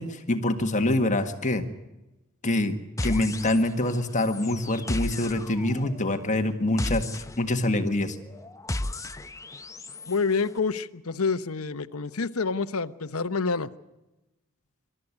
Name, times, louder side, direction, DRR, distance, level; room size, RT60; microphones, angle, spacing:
voice 1, 0.0-1.6 2.4-2.8 3.0-8.2, left 1 dB, 35° left, 7 dB, 1.7 m, -25 dB
sound 1, 3.0-3.9 4.1-10.2, left 1 dB, 15° left, 0.8 m, -34 dB
voice 2, 10.1-13.7, left 4 dB, 80° left, 12 dB, 1.0 m, -27 dB
27.0 x 13.5 x 9.7 m, 1.0 s
head